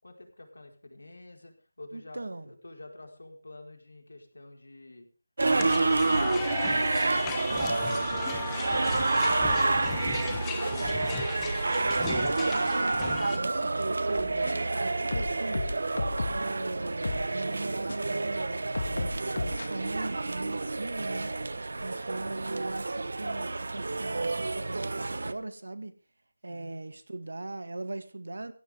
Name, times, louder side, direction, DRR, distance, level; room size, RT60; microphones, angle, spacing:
voice 1, 0.0-2.2 2.4-5.1 5.5-9.1 9.5-11.6 26.5-26.8, left 2 dB, 80° left, 4 dB, 4.9 m, -48 dB
voice 2, 1.9-2.5 12.5-15.7 16.3-21.3 21.8-25.9 26.4-28.5, right 2 dB, 85° right, 11 dB, 2.2 m, -39 dB
sound 1, 5.4-13.4, left 6 dB, 5° left, 0.8 m, -37 dB
sound 2, 5.4-25.3, right 3 dB, 50° right, 1.1 m, -29 dB
sound 3, 14.2-14.7 15.1-16.5 17.0-17.3 17.9-18.0 18.7-19.7, left 2 dB, 60° left, 2.2 m, -33 dB
17.0 x 16.0 x 3.7 m, 0.33 s
figure-of-eight pair, 180°, 0 cm